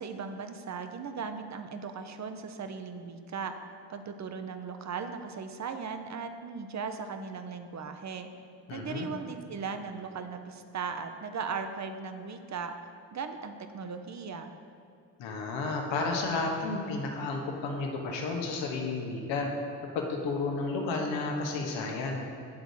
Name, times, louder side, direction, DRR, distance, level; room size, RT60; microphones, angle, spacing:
voice 1, 0.0-3.5 3.9-8.3 8.7-12.7 13.1-14.5, right 5 dB, 40° right, 7 dB, 0.8 m, -38 dB
voice 2, 8.7-9.1 15.2-19.5 19.9-22.3, left 3 dB, 75° left, 1 dB, 1.2 m, -32 dB
9.5 x 3.9 x 6.5 m, 2.5 s
hypercardioid pair, 45°, 45 cm